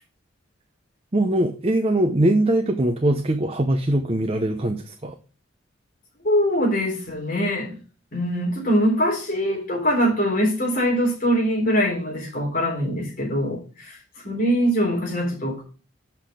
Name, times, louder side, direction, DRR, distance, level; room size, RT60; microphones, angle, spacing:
voice 1, 1.1-5.2, right 1 dB, 30° right, 0.7 m, -21 dB
voice 2, 6.2-7.8 8.1-14.0 14.2-15.6, equal, 50° left, 3.7 m, -23 dB
8.0 x 5.9 x 5.1 m
head